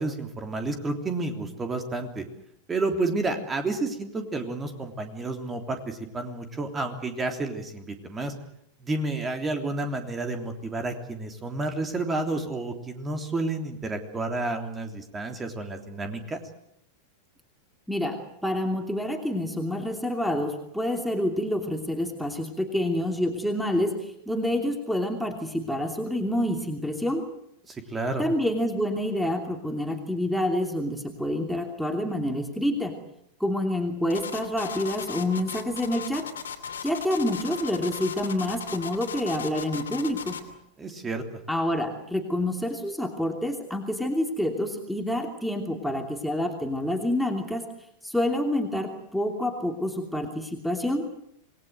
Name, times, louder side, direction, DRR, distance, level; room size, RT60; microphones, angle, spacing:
voice 1, 0.0-2.2 2.7-8.3 8.8-16.4 27.7-28.2 40.8-41.2, right 2 dB, 15° right, 6 dB, 3.3 m, -30 dB
voice 2, 17.9-27.3 28.2-32.9 33.4-36.3 36.8-40.4 41.5-47.6 48.0-51.0, left 1 dB, ahead, 2 dB, 2.9 m, -28 dB
sound 1, 34.1-40.5, left 6 dB, 65° left, 3.0 m, -37 dB
27.5 x 20.0 x 7.9 m, 0.73 s
figure-of-eight pair, 90°, 0 cm